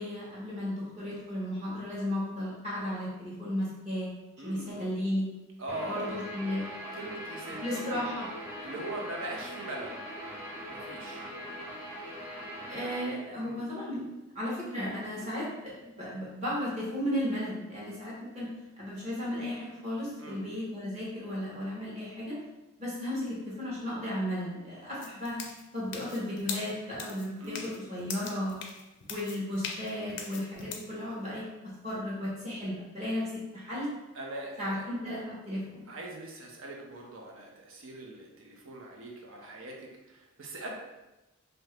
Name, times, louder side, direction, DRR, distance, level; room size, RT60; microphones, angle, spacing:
voice 1, 0.0-4.1 4.4-5.3 5.8-6.6 7.6-8.3 12.7-14.0 14.3-18.5 18.8-22.4 22.8-25.4 25.7-28.6 29.1-31.4 31.8-33.9 34.6-35.8, left 1 dB, 30° right, -7 dB, 1.1 m, -34 dB
voice 2, 4.4-4.9 5.6-6.1 6.9-8.2 8.6-10.0 10.7-11.3 12.7-13.0 13.4-13.6 15.1-15.3 20.2-20.4 27.4-27.7 34.1-34.8 35.9-40.7, right 1 dB, 70° right, 0 dB, 0.7 m, -41 dB
Guitar, 5.7-13.1, equal, 10° right, 0.5 m, -41 dB
sound 1, 25.0-30.9, left 5 dB, 55° left, 0.4 m, -41 dB
2.8 x 2.6 x 3.2 m, 1.0 s
head